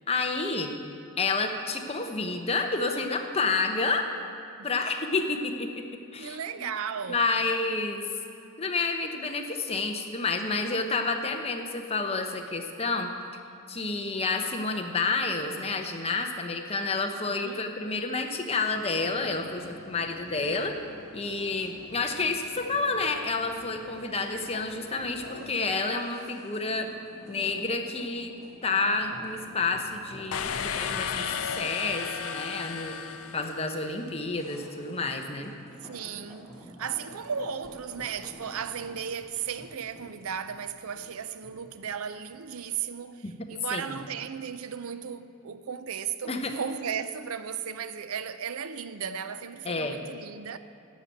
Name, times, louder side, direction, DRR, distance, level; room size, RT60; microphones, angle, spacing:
voice 1, 0.1-0.7 1.2-4.1 4.6-5.8 6.1-6.7 7.1-8.0 8.6-13.1 13.7-20.7 21.1-26.9 27.3-28.3 28.6-33.0 33.3-35.5 43.2-43.3 43.7-44.0 46.3-46.5 49.6-50.0, left 3 dB, 25° left, 0.9 m, -29 dB
voice 2, 6.2-7.2 17.2-17.7 35.8-50.6, right 7 dB, 70° right, 0.5 m, -35 dB
sound 1, 18.7-25.5, left 1 dB, 85° left, 1.1 m, -48 dB
sound 2, 25.3-42.5 42.8-42.9, equal, 5° left, 2.2 m, -50 dB
sound 3, 30.3-34.1, left 7 dB, 70° left, 0.6 m, -33 dB
11.5 x 6.9 x 9.1 m
head